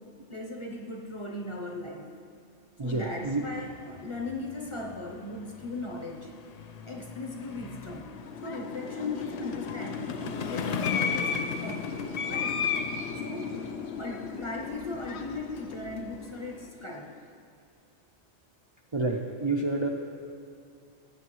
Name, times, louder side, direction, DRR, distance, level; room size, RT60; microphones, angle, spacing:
voice 1, 0.3-2.1 2.8-6.3 6.8-8.1 8.4-11.3 11.6-12.6 13.2-13.6 14.0-17.1, left 2 dB, 30° left, 1 dB, 0.7 m, -38 dB
voice 2, 2.8-3.5 18.9-19.9, right 2 dB, 50° right, 1 dB, 0.3 m, -29 dB
sound 1, 2.9-16.7, left 6 dB, 85° left, 0.3 m, -41 dB
sound 2, 8.1-16.6, left 6 dB, 70° left, 0.9 m, -34 dB
14.5 x 8.0 x 3.1 m, 2.4 s
omnidirectional pair, 1.2 m